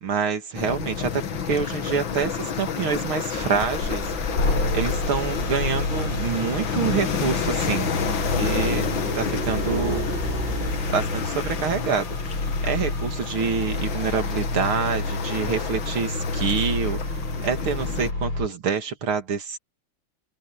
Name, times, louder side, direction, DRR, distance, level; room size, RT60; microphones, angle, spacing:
voice 1, 0.0-4.0 4.7-7.9 8.4-8.9 9.1-10.0 10.5-10.6 10.9-17.0 17.4-19.6, right 6 dB, 90° right, 3.1 m, -27 dB
sound 1, 0.5-18.1, left 7 dB, 70° left, 2.3 m, -30 dB
sound 2, 3.3-11.7, right 2 dB, 30° right, 3.7 m, -35 dB
sound 3, 4.3-18.5, left 2 dB, 85° left, 7.3 m, -29 dB
open air
omnidirectional pair, 2.2 m